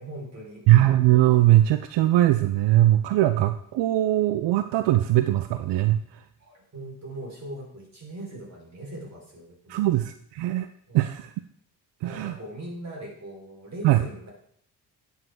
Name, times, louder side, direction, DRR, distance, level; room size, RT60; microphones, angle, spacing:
voice 1, 0.0-0.6 6.4-9.9 10.9-11.0 12.0-14.3, right 1 dB, 40° right, -1 dB, 4.7 m, -40 dB
voice 2, 0.7-6.2 9.7-10.7 10.9-11.3 12.0-12.3 13.8-14.0, right 14 dB, 80° right, 10 dB, 0.6 m, -21 dB
10.5 x 7.2 x 3.8 m, 0.65 s
cardioid pair, 70°, 41 cm